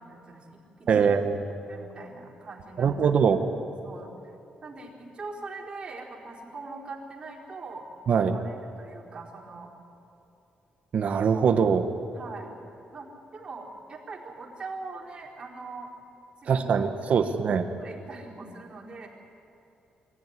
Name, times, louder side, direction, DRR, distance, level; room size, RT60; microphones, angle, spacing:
voice 1, 0.0-1.1 1.7-2.9 3.8-4.1 4.6-9.7 12.1-12.5 12.9-15.9 16.4-16.8 17.1-17.4 17.8-19.1, right 3 dB, 40° right, -4 dB, 4.7 m, -42 dB
voice 2, 0.9-1.4 2.8-3.4 8.1-8.4 10.9-11.9 16.5-17.6, right 6 dB, 55° right, 7 dB, 1.3 m, -22 dB
25.0 x 15.5 x 9.8 m, 2.7 s
cardioid pair, 115°, 3 cm